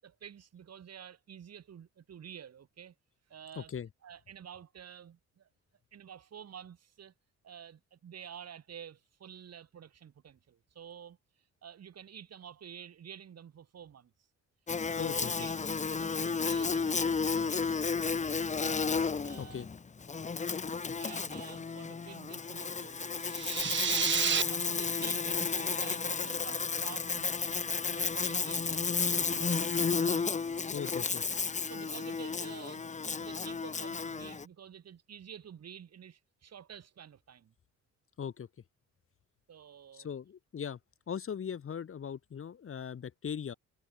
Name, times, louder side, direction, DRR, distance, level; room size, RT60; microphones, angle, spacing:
voice 1, 0.0-2.9 3.3-3.7 4.0-5.5 5.9-7.1 7.4-11.2 11.6-14.1 14.9-15.6 15.9-17.8 18.4-18.7 19.2-19.7 20.2-20.4 20.7-23.2 23.9-27.6 27.9-29.9 30.9-31.0 31.6-37.5 39.5-40.1, right 8 dB, 55° right, 6.8 m, -50 dB
voice 2, 3.5-3.9 15.0-15.5 19.4-19.7 30.7-31.2 38.2-38.5 39.9-40.8 41.1-43.5, left 7 dB, 45° left, 1.8 m, -39 dB
Buzz, 14.7-34.4, left 5 dB, 25° left, 0.9 m, -32 dB
sound 1, 23.3-24.4, right 8 dB, 40° right, 0.8 m, -30 dB
cardioid pair, 90°, 30 cm